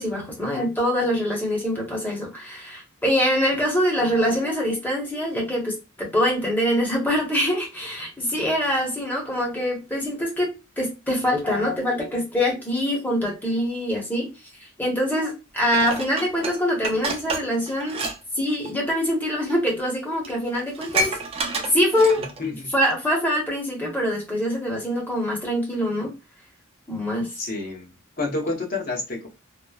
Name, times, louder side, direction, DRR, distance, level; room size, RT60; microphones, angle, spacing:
voice 1, 0.0-10.5 10.8-14.3 14.6-18.0 18.4-21.2 21.7-22.2 22.7-26.1 26.9-27.3, equal, 10° left, 0.8 m, -24 dB
Dishes pots and pans, 15.7-18.2 18.5-18.7 19.5-19.6 19.9-20.0 20.2-22.5 22.9-23.0, right 2 dB, 30° right, 0.4 m, -29 dB
voice 2, 22.2-22.7 27.4-29.3, left 3 dB, 45° left, 0.8 m, -30 dB
3.0 x 2.0 x 2.3 m
head